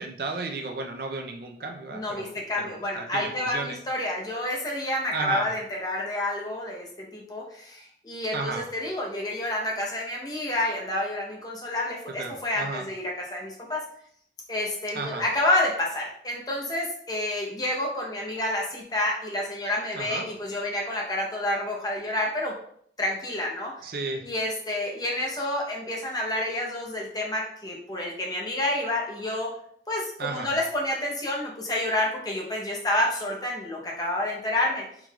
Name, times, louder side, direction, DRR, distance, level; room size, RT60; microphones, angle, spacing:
voice 1, 0.0-3.8 5.1-5.5 8.3-8.7 12.2-12.9 14.9-15.2 19.9-20.3 23.8-24.3 30.2-30.6, right 3 dB, 55° right, 3 dB, 0.5 m, -33 dB
voice 2, 1.9-13.8 14.5-22.5 23.0-23.7 24.2-29.5 29.9-34.8, left 1 dB, 20° left, -2 dB, 0.8 m, -29 dB
4.6 x 3.8 x 2.3 m, 0.65 s
head